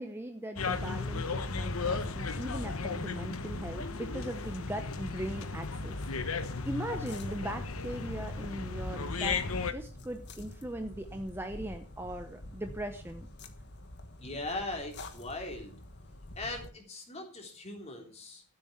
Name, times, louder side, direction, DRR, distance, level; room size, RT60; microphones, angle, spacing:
voice 1, 0.0-6.0 6.6-13.3, right 1 dB, 10° right, 6 dB, 0.8 m, -39 dB
sound 1, 0.6-9.7, left 4 dB, 70° left, 1.1 m, -35 dB
sound 2, 4.5-16.7, left 1 dB, 50° left, 1.5 m, -48 dB
voice 2, 14.2-15.7 16.3-18.4, left 2 dB, 30° left, 3 dB, 3.4 m, -39 dB
13.5 x 8.4 x 5.8 m, 0.39 s
head